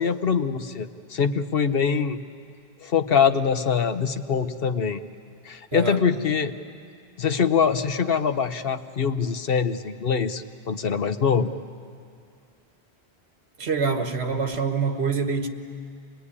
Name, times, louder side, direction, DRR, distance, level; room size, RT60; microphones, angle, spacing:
voice 1, 0.0-2.2 2.8-5.0 5.4-6.5 7.2-11.5, left 6 dB, 65° left, 9 dB, 1.1 m, -23 dB
voice 2, 5.7-6.0 13.6-15.5, right 5 dB, 75° right, 6 dB, 1.6 m, -25 dB
25.5 x 20.5 x 9.9 m, 2.3 s
omnidirectional pair, 1.1 m